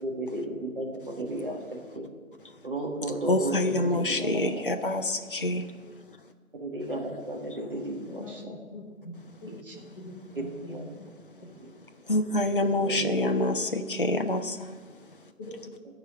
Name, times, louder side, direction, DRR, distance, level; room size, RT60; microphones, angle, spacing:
voice 1, 0.0-2.1 2.6-4.6 6.5-8.5 9.5-9.7 10.7-10.8 11.6-11.7 12.8-13.6, right 1 dB, 40° right, 0 dB, 1.8 m, -34 dB
voice 2, 3.3-5.6 12.1-14.7, left 1 dB, 40° left, 6 dB, 0.5 m, -26 dB
voice 3, 8.1-11.1 11.4-11.5 15.4-15.5, left 1 dB, 20° left, -10 dB, 1.5 m, -43 dB
13.5 x 4.9 x 7.6 m, 1.5 s
figure-of-eight pair, 160°, 42 cm